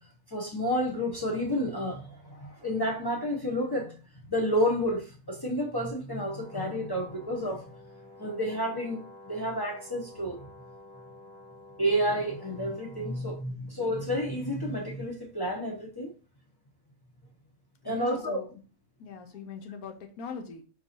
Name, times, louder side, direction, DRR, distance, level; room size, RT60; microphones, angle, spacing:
voice 1, 0.3-4.0 4.3-7.8 8.2-10.5 11.8-16.1 17.8-18.4, equal, 30° left, 0.4 m, -30 dB
Brass instrument, 6.3-13.3, left 2 dB, 55° left, 2.7 m, -51 dB
voice 2, 17.8-18.6 19.0-20.6, left 5 dB, 80° left, 1.2 m, -41 dB
4.5 x 4.0 x 2.8 m
omnidirectional pair, 1.5 m